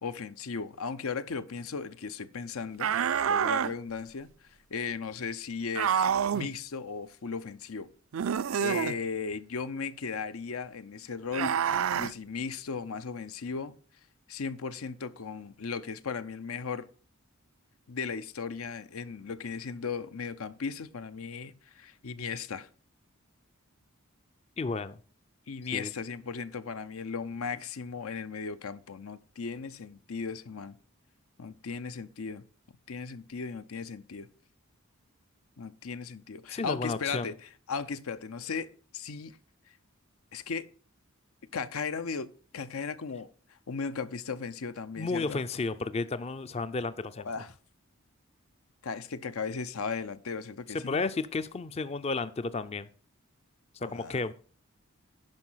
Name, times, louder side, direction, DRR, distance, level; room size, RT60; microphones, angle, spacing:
voice 1, 0.0-2.9 3.3-4.3 4.7-6.1 6.3-7.9 8.6-11.6 12.0-13.7 14.3-16.9 17.9-22.7 25.5-30.8 31.4-32.4 32.9-34.3 35.6-39.4 40.3-40.7 41.5-43.3 43.7-45.4 47.2-47.5 48.8-51.0 53.8-54.2, left 5 dB, 85° left, 0.7 m, -36 dB
sound 1, 2.8-3.7 5.7-6.5 8.1-9.0 11.3-12.1, right 8 dB, 70° right, 0.4 m, -27 dB
voice 2, 24.6-25.0 25.7-25.9 36.5-37.3 45.0-47.3 50.7-52.9 53.9-54.3, left 3 dB, 30° left, 0.4 m, -32 dB
10.5 x 5.3 x 5.7 m
head